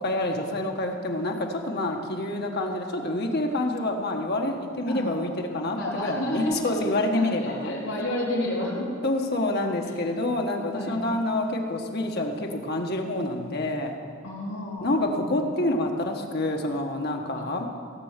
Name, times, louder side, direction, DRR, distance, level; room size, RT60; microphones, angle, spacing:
voice 1, 0.0-7.8 9.0-14.0 14.8-17.7, left 1 dB, 55° left, 3 dB, 1.4 m, -27 dB
voice 2, 4.9-5.2 5.7-6.7 7.1-8.9 9.8-9.9 10.7-11.0 14.2-14.8 15.2-15.3, left 1 dB, 80° left, -8 dB, 3.2 m, -30 dB
17.0 x 6.2 x 8.1 m, 2.3 s
head